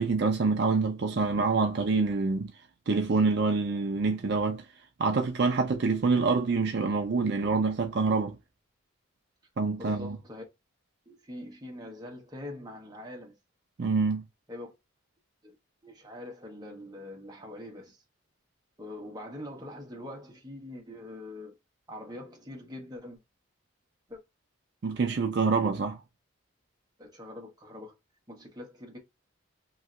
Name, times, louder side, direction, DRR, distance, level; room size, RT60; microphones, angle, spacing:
voice 1, 0.0-2.5 2.9-4.6 5.0-8.4 9.6-10.2 13.8-14.2 24.8-26.0, right 4 dB, 55° right, 0.4 m, -26 dB
voice 2, 9.8-10.4 11.1-13.4 14.5-14.7 15.4-15.6 15.8-18.0 18.8-21.6 21.9-23.2 24.1-24.2 27.0-28.0 28.3-29.0, left 1 dB, 20° right, 1.0 m, -43 dB
3.1 x 2.7 x 2.4 m
head